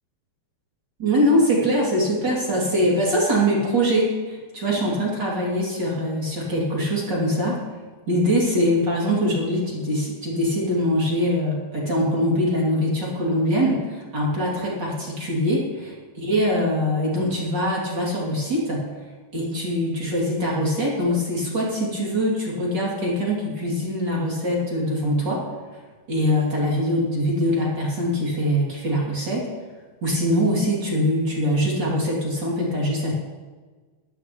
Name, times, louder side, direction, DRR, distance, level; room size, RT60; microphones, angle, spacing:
voice 1, 1.0-7.6 8.1-15.9 16.2-18.9 19.3-25.4 26.1-29.5 30.0-33.1, equal, 30° right, -4 dB, 2.5 m, -23 dB
16.5 x 12.0 x 3.1 m, 1.4 s
omnidirectional pair, 5.1 m